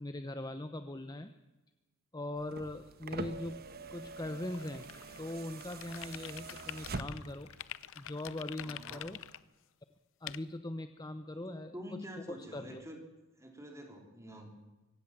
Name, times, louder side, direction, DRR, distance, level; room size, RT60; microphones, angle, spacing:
voice 1, 0.0-1.3 2.1-3.6 3.9-4.9 5.2-7.5 8.0-9.2 10.2-12.0 12.3-12.8, left 1 dB, 20° left, 10 dB, 0.8 m, -41 dB
sound 1, 2.4-7.5 8.7-8.8, right 3 dB, 45° right, 1.3 m, -44 dB
sound 2, 4.5-9.4, left 6 dB, 85° left, 1.7 m, -60 dB
sound 3, 5.6-7.2 7.6-9.4 10.3-10.4, left 12 dB, 65° left, 0.6 m, -45 dB
voice 2, 8.6-9.1 11.3-13.0 13.4-14.6, equal, 15° right, 3 dB, 3.6 m, -47 dB
25.0 x 16.5 x 7.4 m, 1.1 s
head